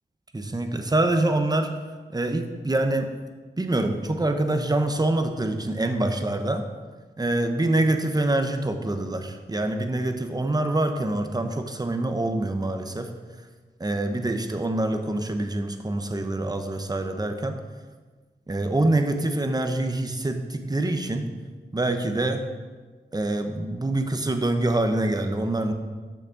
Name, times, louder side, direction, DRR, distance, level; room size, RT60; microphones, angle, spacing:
voice 1, 0.3-1.7 2.1-3.1 3.6-6.6 7.2-13.1 13.8-17.6 18.5-21.3 21.7-22.4 23.1-25.7, right 2 dB, 20° right, 6 dB, 0.8 m, -25 dB
6.5 x 6.2 x 7.0 m, 1.4 s
wide cardioid pair, 95°, 19 cm